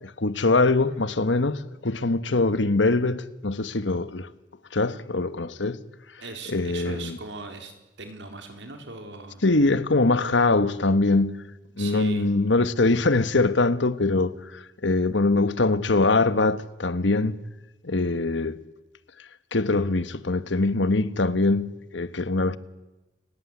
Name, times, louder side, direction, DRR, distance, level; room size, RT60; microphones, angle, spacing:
voice 1, 0.0-4.3 4.7-5.8 6.5-7.2 9.4-11.4 11.8-17.4 17.8-18.6 19.5-22.6, left 3 dB, 85° left, 1.3 m, -23 dB
voice 2, 6.2-9.4 11.8-12.3, right 3 dB, 80° right, 4.2 m, -39 dB
29.5 x 18.0 x 9.7 m
head